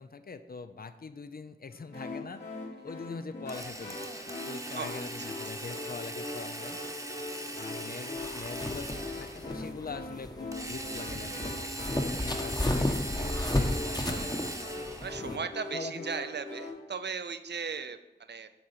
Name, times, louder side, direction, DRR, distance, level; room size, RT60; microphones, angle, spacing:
voice 1, 0.0-2.4 2.8-4.1 4.5-6.8 7.6-14.5 15.2-15.5 15.7-16.0, left 4 dB, 55° left, 11 dB, 0.5 m, -43 dB
sound 1, 1.9-16.7, left 2 dB, 75° left, 2.4 m, -42 dB
Drill, 3.5-9.6 10.5-15.2, right 1 dB, 20° right, 1.0 m, -40 dB
voice 2, 4.7-5.4 15.0-18.5, right 5 dB, 75° right, 11 dB, 0.5 m, -37 dB
sound 2, 8.2-15.4, left 1 dB, 20° left, 1.0 m, -33 dB
6.9 x 3.8 x 5.7 m, 0.96 s
cardioid pair, 40°, 18 cm